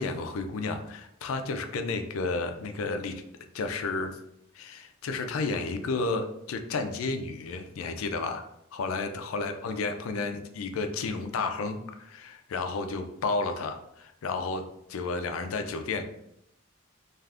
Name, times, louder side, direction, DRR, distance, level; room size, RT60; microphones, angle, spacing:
voice 1, 0.0-3.2 3.5-4.1 4.6-8.4 8.7-14.6 14.9-16.0, left 3 dB, 80° left, 7 dB, 0.4 m, -32 dB
2.4 x 2.4 x 3.3 m, 0.78 s
head